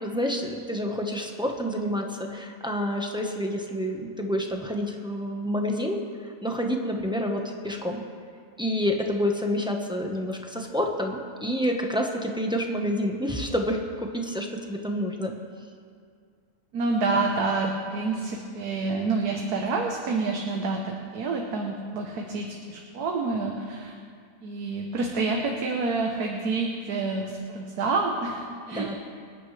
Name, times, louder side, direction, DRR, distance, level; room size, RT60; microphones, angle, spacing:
voice 1, 0.0-8.0 8.6-15.3 28.7-29.0, equal, 5° right, 1 dB, 1.0 m, -28 dB
voice 2, 16.7-23.9 24.4-28.9, right 3 dB, 90° right, 1 dB, 1.6 m, -28 dB
27.0 x 9.3 x 3.3 m, 2.2 s
omnidirectional pair, 1.6 m